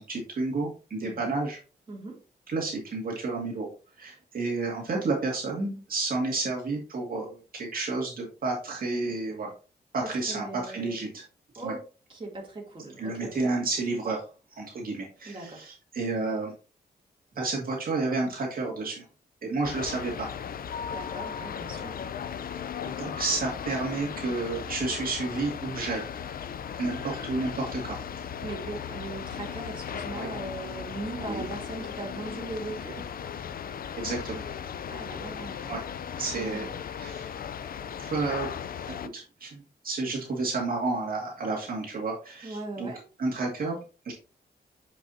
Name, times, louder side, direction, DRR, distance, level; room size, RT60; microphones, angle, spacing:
voice 1, 0.0-1.6 2.5-3.7 4.0-9.5 9.9-11.2 11.6-11.7 13.0-14.2 14.6-16.5 17.4-19.1 19.4-20.3 22.8-26.0 26.8-28.0 30.1-30.3 31.3-31.5 34.0-34.4 35.7-35.8 36.2-36.7 37.0-37.3 38.0-38.5 39.1-42.9 43.2-43.8 44.0-44.1, right 3 dB, 55° right, -2 dB, 2.2 m, -31 dB
voice 2, 1.0-1.3 1.9-2.2 10.0-11.0 11.5-11.8 12.1-13.6 15.2-15.7 20.9-22.0 28.4-33.1 34.9-35.8 36.3-36.8 42.4-43.0, right 2 dB, 30° right, -2 dB, 2.8 m, -39 dB
sound 1, 19.6-39.1, left 8 dB, 60° left, 0.5 m, -37 dB
8.4 x 5.4 x 2.8 m, 0.35 s
cardioid pair, 105°, 17 cm